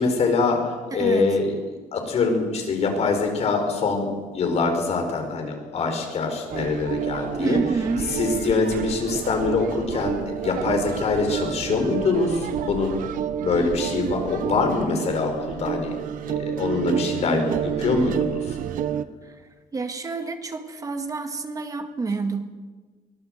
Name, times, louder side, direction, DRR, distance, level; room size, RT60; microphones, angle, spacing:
voice 1, 0.0-7.6 8.1-13.0 13.4-15.9 16.2-18.6, left 4 dB, 45° left, 4 dB, 5.1 m, -24 dB
voice 2, 0.9-1.3 7.4-8.1 17.3-17.9 19.3-19.4 19.7-22.4, right 4 dB, 25° right, 6 dB, 1.9 m, -29 dB
sound 1, 6.5-19.0, right 9 dB, 70° right, 1.1 m, -29 dB
24.0 x 18.0 x 8.0 m, 1.4 s
cardioid pair, 165°, 15 cm